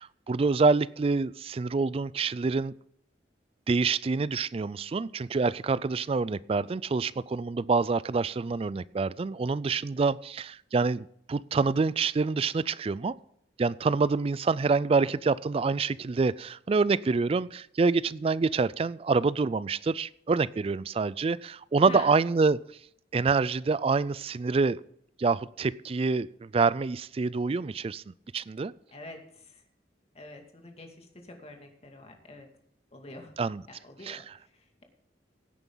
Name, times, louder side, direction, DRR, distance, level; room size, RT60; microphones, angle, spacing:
voice 1, 0.0-2.7 3.7-13.1 13.6-22.6 23.1-24.8 25.2-28.0 28.3-28.7 33.4-33.6 34.1-34.2, right 4 dB, 30° right, 19 dB, 0.3 m, -26 dB
voice 2, 21.8-22.2 28.9-29.6 30.1-32.5 32.9-33.3 33.7-34.8, left 2 dB, 35° left, 3 dB, 2.2 m, -46 dB
16.5 x 9.1 x 3.9 m, 0.69 s
head